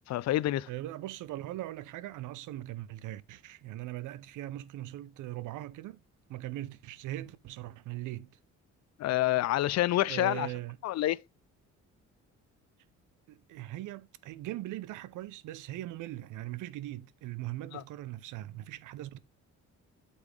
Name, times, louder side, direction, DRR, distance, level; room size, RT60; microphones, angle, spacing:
voice 1, 0.1-0.7 9.0-10.5 10.8-11.2 17.7-17.8, left 15 dB, 60° left, 0.4 m, -28 dB
voice 2, 0.7-6.0 6.3-8.3 10.1-10.8 13.3-19.2, right 15 dB, 85° right, 0.6 m, -40 dB
8.2 x 5.6 x 3.3 m
cardioid pair, 90°, 30 cm